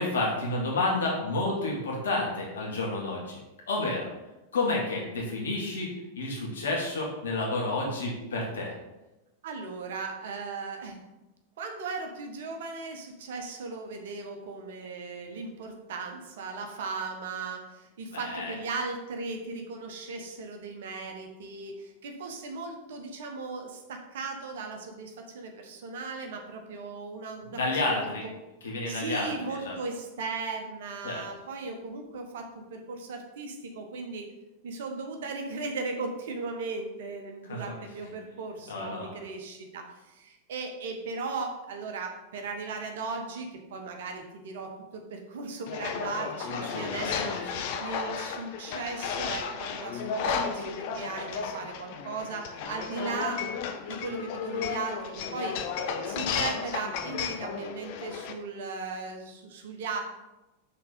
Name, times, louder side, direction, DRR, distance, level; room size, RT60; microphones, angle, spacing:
voice 1, 0.0-3.4 3.7-4.1 4.5-8.7 18.1-18.5 27.4-28.3 28.6-29.8 31.0-31.2 37.5-37.7 38.7-39.2 46.5-47.6, left 2 dB, 65° left, -2 dB, 1.8 m, -30 dB
voice 2, 9.4-11.0 11.6-28.3 28.9-34.3 34.6-47.4 47.8-53.4 53.9-55.6 56.0-60.0, right 4 dB, 55° right, 4 dB, 1.0 m, -37 dB
sound 1, 45.7-58.3, left 6 dB, 45° left, 0.6 m, -33 dB
5.8 x 3.8 x 5.2 m, 1.0 s
figure-of-eight pair, 90°, 0 cm